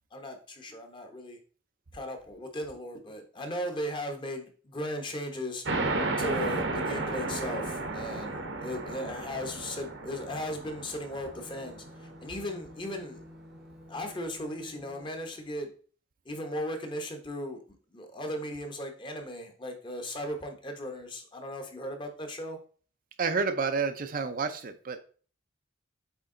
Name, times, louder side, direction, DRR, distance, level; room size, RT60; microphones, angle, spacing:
voice 1, 0.1-1.4 1.9-5.6 6.2-13.2 13.9-15.7 16.2-22.6, left 1 dB, 25° left, 5 dB, 1.0 m, -37 dB
sound 1, 5.7-12.8, right 2 dB, 70° right, 1.0 m, -33 dB
sound 2, 11.3-15.2, left 1 dB, ahead, 0.7 m, -51 dB
voice 2, 23.2-25.0, right 5 dB, 45° right, 8 dB, 0.5 m, -29 dB
8.1 x 3.5 x 3.8 m, 0.41 s
head